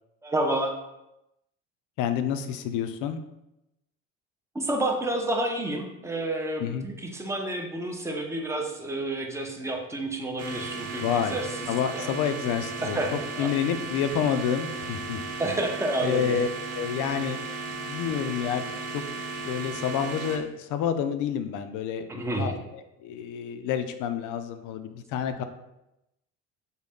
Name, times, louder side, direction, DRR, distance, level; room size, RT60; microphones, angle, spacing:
voice 1, 0.2-0.7 4.5-11.6 11.9-12.1 12.8-13.5 15.4-16.4 22.1-22.6, right 1 dB, 10° right, 2 dB, 0.5 m, -30 dB
voice 2, 2.0-3.2 6.6-6.9 11.0-11.4 11.7-13.0 13.4-15.2 16.0-16.5 16.7-17.4 17.7-18.6 18.9-19.0 19.4-22.1 22.4-22.5 23.0-25.4, left 8 dB, 65° left, 9 dB, 0.4 m, -28 dB
sound 1, 10.4-20.4, right 4 dB, 85° right, 0.6 m, -35 dB
3.8 x 2.1 x 3.5 m, 0.89 s
supercardioid pair, 95°, 33 cm